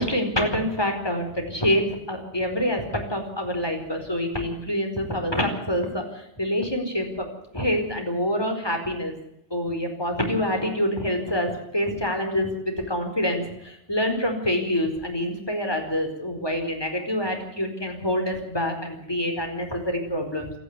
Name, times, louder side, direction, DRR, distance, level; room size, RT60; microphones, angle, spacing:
voice 1, 0.0-7.3 7.5-9.1 9.5-20.5, equal, 20° left, 4 dB, 4.8 m, -26 dB
27.0 x 10.5 x 9.8 m, 0.79 s
omnidirectional pair, 1.2 m